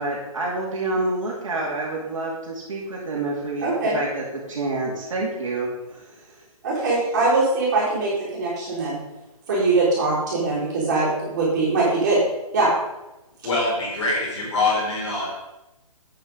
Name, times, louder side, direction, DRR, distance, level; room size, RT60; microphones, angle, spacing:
voice 1, 0.0-6.4, right 2 dB, 55° right, -4 dB, 2.6 m, -28 dB
voice 2, 3.6-4.0 6.6-9.0 9.5-12.2 12.5-12.7, right 3 dB, 30° right, -7 dB, 3.7 m, -22 dB
voice 3, 13.4-15.3, left 2 dB, 50° left, -5 dB, 4.0 m, -24 dB
8.6 x 6.7 x 5.3 m, 0.98 s
hypercardioid pair, 170°, 19 cm